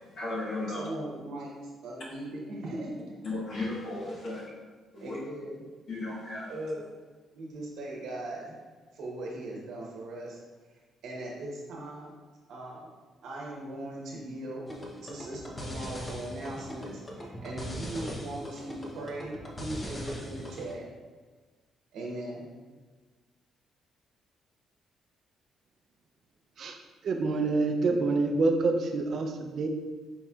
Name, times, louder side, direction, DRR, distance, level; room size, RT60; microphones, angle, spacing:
voice 1, 0.1-0.9 3.2-4.5 4.9-5.2 5.9-6.5, left 2 dB, 60° left, -5 dB, 1.3 m, -35 dB
voice 2, 0.7-3.2 5.0-5.6 6.5-6.9 7.3-8.6 8.9-10.4 11.0-12.2 12.5-12.9 13.2-14.7 15.0-20.9 21.9-22.5, right 1 dB, 75° right, -3 dB, 1.0 m, -39 dB
sound 1, 14.7-20.7, equal, 25° left, 0.7 m, -40 dB
voice 3, 27.0-29.7, right 3 dB, 60° right, 4 dB, 0.4 m, -27 dB
4.4 x 4.1 x 2.4 m, 1.4 s
cardioid pair, 90°, 0 cm